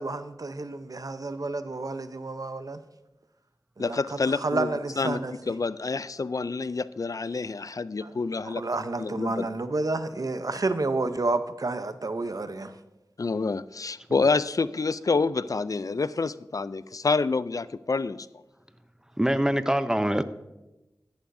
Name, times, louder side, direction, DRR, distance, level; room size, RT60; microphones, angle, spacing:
voice 1, 0.0-2.8 3.8-4.0 4.3-5.3 8.0-8.1 8.4-12.8, right 3 dB, 60° right, 0.7 m, -30 dB
voice 2, 3.8-4.7 5.0-5.2 5.5-8.6 9.0-9.5 13.2-18.3, left 4 dB, 55° left, 0.3 m, -27 dB
voice 3, 19.2-20.2, right 1 dB, 10° right, 0.6 m, -24 dB
14.0 x 10.5 x 2.6 m
wide cardioid pair, 50°, 7 cm